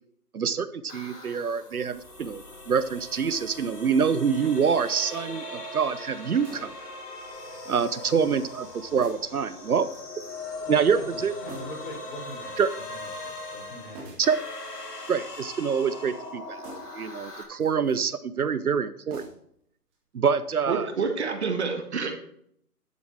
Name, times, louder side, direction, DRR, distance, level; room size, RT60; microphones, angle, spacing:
voice 1, 0.3-6.7 7.7-9.9 10.7-11.3 12.6-12.7 14.2-14.4 15.1-16.6 16.9-19.3 20.1-20.9, right 6 dB, 70° right, 14 dB, 0.8 m, -26 dB
sound 1, 0.9-17.4, left 2 dB, 85° left, 3.1 m, -40 dB
sound 2, 4.8-5.2 6.4-6.9 7.3-7.8 8.1-8.2 9.0-9.4 9.9-10.4 11.4-11.9 12.2-12.8 13.9-14.4 14.9-15.6 16.6-17.0 17.5-18.0 19.1-19.6 19.9-20.0, right 2 dB, 10° right, 2.2 m, -46 dB
voice 2, 10.6-14.1, left 1 dB, 35° left, 0 dB, 3.9 m, -42 dB
voice 3, 20.7-22.1, right 5 dB, 45° right, 5 dB, 1.9 m, -28 dB
12.0 x 6.9 x 4.7 m, 0.66 s
figure-of-eight pair, 155°, 46 cm